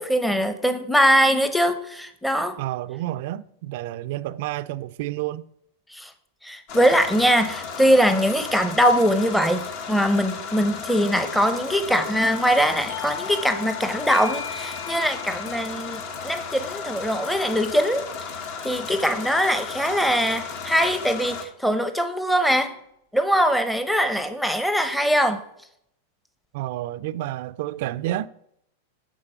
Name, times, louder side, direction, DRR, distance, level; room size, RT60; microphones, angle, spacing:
voice 1, 0.0-2.6 5.9-6.1 6.4-18.0 18.6-22.7 23.1-25.4, equal, 5° left, 0.8 m, -22 dB
voice 2, 2.6-5.5 26.5-28.3, right 14 dB, 60° right, 0.4 m, -30 dB
sound 1, 6.7-21.4, left 6 dB, 55° left, 1.3 m, -34 dB
Doorbell, 12.9-18.2, left 7 dB, 90° left, 0.7 m, -39 dB
9.0 x 3.9 x 6.7 m
hypercardioid pair, 100°, 0 cm